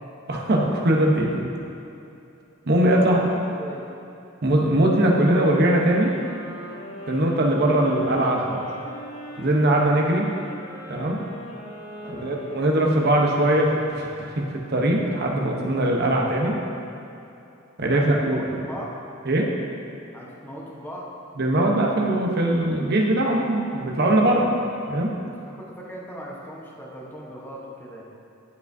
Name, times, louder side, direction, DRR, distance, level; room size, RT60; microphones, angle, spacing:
voice 1, 0.3-1.5 2.7-3.2 4.4-6.1 7.1-8.6 9.4-10.3 10.9-11.2 12.2-13.7 14.0-14.3 14.7-16.6 17.8-18.7 19.3-19.5 21.4-24.4 24.9-25.1, right 1 dB, 50° right, -1 dB, 0.9 m, -21 dB
voice 2, 2.9-3.8 12.0-12.3 17.9-18.1 18.3-18.9 20.1-21.1 24.1-24.6 25.3-28.1, equal, 10° left, -4 dB, 1.0 m, -39 dB
sound 1, 5.6-14.8, left 1 dB, 65° left, 1.3 m, -41 dB
11.5 x 4.9 x 2.7 m, 2.8 s
head